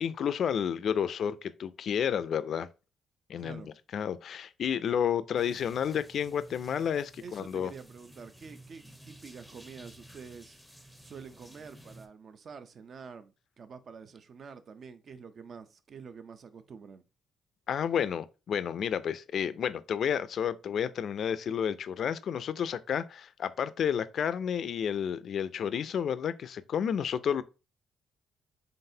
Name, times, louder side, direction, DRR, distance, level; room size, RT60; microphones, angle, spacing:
voice 1, 0.0-2.7 3.3-3.6 3.9-7.7 17.7-27.4, left 8 dB, 60° left, 0.3 m, -31 dB
voice 2, 3.4-3.7 7.2-10.6 11.0-17.0, right 6 dB, 50° right, 0.5 m, -47 dB
sound 1, 5.4-12.1, right 1 dB, 5° right, 0.6 m, -53 dB
3.9 x 3.5 x 2.7 m
cardioid pair, 90°, 0 cm